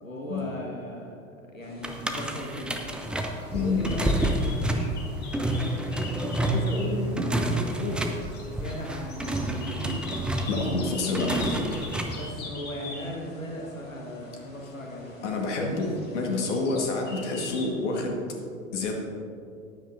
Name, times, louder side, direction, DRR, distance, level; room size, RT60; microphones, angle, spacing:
voice 1, 0.0-1.2 1.5-2.8 3.5-4.4 6.2-8.2 8.5-10.1 12.1-15.2 17.4-17.5, left 1 dB, 85° left, -1 dB, 1.5 m, -36 dB
sound 1, 1.6-17.7, left 3 dB, 25° left, 2.3 m, -43 dB
sound 2, 1.8-12.3, right 1 dB, ahead, 0.5 m, -29 dB
voice 2, 10.5-11.7 15.2-18.2 18.7-18.9, left 3 dB, 60° left, 1 dB, 1.7 m, -28 dB
14.5 x 10.5 x 2.6 m, 2.5 s
figure-of-eight pair, 90°, 39 cm